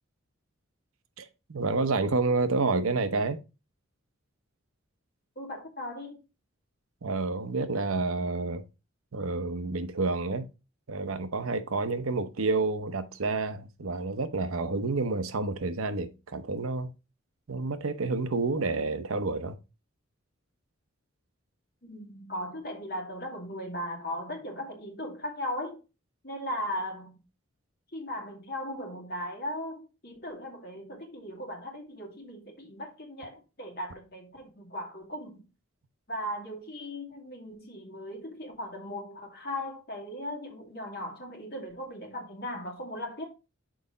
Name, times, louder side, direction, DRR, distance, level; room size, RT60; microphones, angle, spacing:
voice 1, 1.2-3.4 7.0-8.6 9.1-10.5 10.9-16.9 17.5-19.6, right 3 dB, 85° right, 0.7 m, -29 dB
voice 2, 5.4-6.2 21.8-25.8 26.2-27.1 27.9-35.4 36.1-43.2, left 1 dB, 50° left, 2.3 m, -38 dB
6.3 x 4.8 x 3.9 m
head